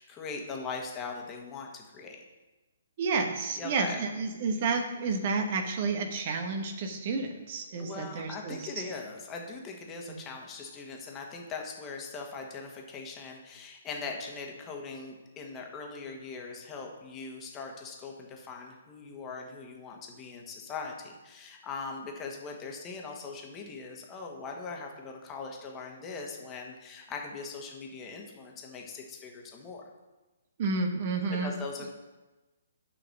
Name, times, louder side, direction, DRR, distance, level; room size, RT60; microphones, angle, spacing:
voice 1, 0.0-2.2 3.6-4.0 7.8-29.8 31.4-31.9, left 4 dB, 20° left, 1 dB, 1.6 m, -41 dB
voice 2, 3.0-8.7 10.1-10.2 30.6-31.5, right 4 dB, 40° right, 5 dB, 1.1 m, -30 dB
8.3 x 5.8 x 6.3 m, 1.1 s
figure-of-eight pair, 130°, 0 cm